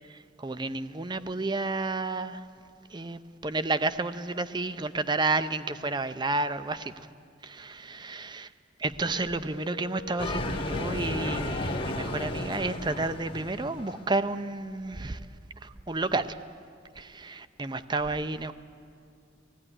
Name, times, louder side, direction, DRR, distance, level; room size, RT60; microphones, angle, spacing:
voice 1, 0.4-2.4 2.9-7.1 7.4-8.4 8.8-15.2 15.6-16.4 17.0-18.5, right 3 dB, 25° right, 12 dB, 0.6 m, -31 dB
Wind instrument woodwind instrument, 9.1-13.5, left 3 dB, 70° left, 0.9 m, -43 dB
sound 1, 10.2-14.1, left 1 dB, 25° left, 1.3 m, -33 dB
18.5 x 16.0 x 10.0 m, 2.4 s
head